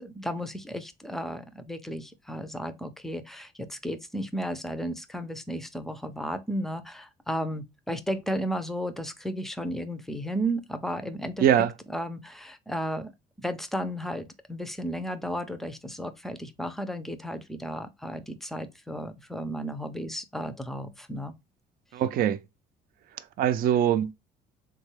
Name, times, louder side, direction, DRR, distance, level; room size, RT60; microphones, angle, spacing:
voice 1, 0.2-11.4 11.9-13.1 13.4-21.3, equal, ahead, 0.5 m, -34 dB
voice 2, 11.4-11.7 21.9-22.4 23.4-24.1, right 10 dB, 60° right, 0.4 m, -22 dB
3.6 x 2.2 x 3.1 m
cardioid pair, 110°, 17 cm